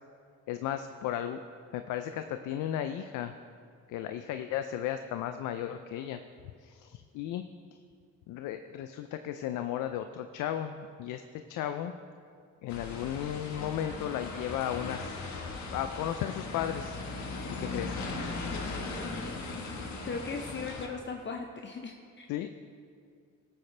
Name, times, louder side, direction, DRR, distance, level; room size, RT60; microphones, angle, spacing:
voice 1, 0.5-1.4 1.7-3.3 3.9-6.2 6.6-7.4 8.3-11.2 11.5-11.9 12.6-15.4 15.7-17.0 17.6-18.0 19.6-19.7 20.1-20.2 22.3-22.5, left 10 dB, 90° left, 8 dB, 0.5 m, -35 dB
sound 1, 12.7-20.9, left 3 dB, 65° left, 1.4 m, -38 dB
voice 2, 20.0-22.3, left 4 dB, 40° left, 3 dB, 0.7 m, -38 dB
16.5 x 8.7 x 3.3 m, 2.3 s
cardioid pair, 90°, 30 cm